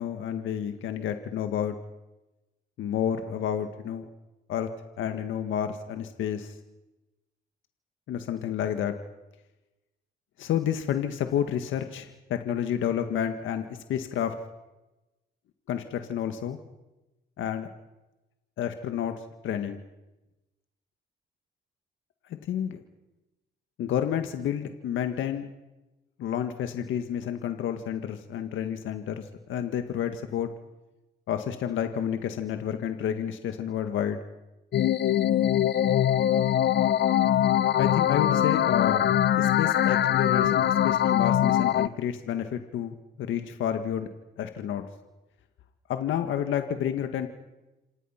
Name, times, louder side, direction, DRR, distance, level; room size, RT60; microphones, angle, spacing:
voice 1, 0.0-1.8 2.8-4.1 4.5-4.7 5.0-6.6 8.1-8.9 10.4-14.4 15.7-16.6 17.4-17.7 18.6-19.1 19.4-19.8 22.4-22.8 23.8-25.5 26.2-30.5 31.3-34.2 37.8-39.1 39.4-44.1 44.4-44.8 45.9-47.3, left 9 dB, 80° left, 7 dB, 1.8 m, -30 dB
sound 1, 34.7-41.9, left 11 dB, 60° left, 0.8 m, -22 dB
27.0 x 26.5 x 5.9 m, 1.0 s
cardioid pair, 90°, 20 cm